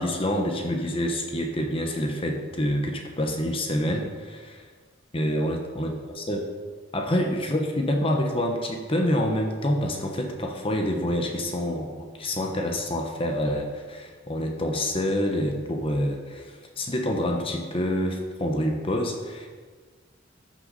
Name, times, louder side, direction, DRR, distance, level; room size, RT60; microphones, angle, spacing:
voice 1, 0.0-4.7 5.1-6.5 6.9-19.5, equal, 25° left, 2 dB, 0.9 m, -27 dB
13.0 x 6.2 x 4.1 m, 1.5 s
head